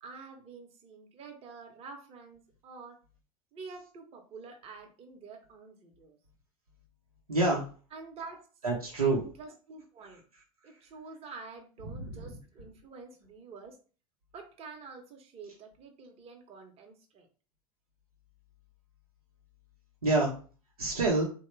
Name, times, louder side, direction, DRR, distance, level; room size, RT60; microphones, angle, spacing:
voice 1, 0.0-3.0 3.5-6.2 7.9-8.4 9.0-10.2 10.6-13.8 14.3-17.3, right 4 dB, 35° right, 3 dB, 0.8 m, -48 dB
voice 2, 7.3-7.6 8.6-9.2 11.8-12.3 20.0-20.3 20.8-21.2, right 2 dB, 90° right, -3 dB, 0.7 m, -27 dB
3.1 x 2.1 x 3.1 m, 0.38 s
figure-of-eight pair, 80°, 18 cm